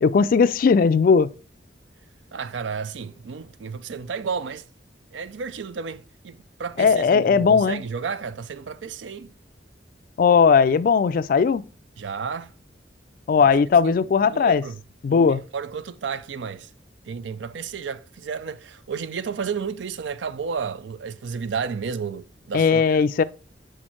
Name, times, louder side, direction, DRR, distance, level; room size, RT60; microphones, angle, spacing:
voice 1, 0.0-1.3 6.8-7.8 10.2-11.7 13.3-14.6 15.0-15.4 22.5-23.2, left 5 dB, 50° left, 0.3 m, -18 dB
voice 2, 2.3-4.7 5.1-9.3 12.0-12.5 13.4-13.5 13.8-14.0 14.2-14.8 15.1-16.7 17.1-23.0, right 6 dB, 80° right, 0.4 m, -32 dB
5.0 x 4.4 x 4.3 m
head